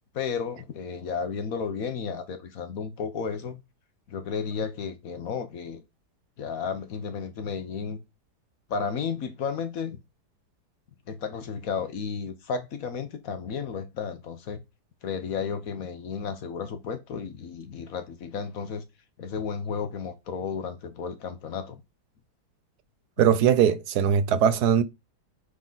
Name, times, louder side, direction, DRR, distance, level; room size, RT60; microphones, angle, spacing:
voice 1, 0.1-3.6 4.1-5.8 6.4-8.0 8.7-10.0 11.1-14.6 15.0-18.8 19.2-21.8, left 6 dB, 60° left, 1.3 m, -33 dB
voice 2, 23.2-24.8, right 8 dB, 70° right, 1.2 m, -20 dB
8.4 x 3.9 x 4.0 m
omnidirectional pair, 1.8 m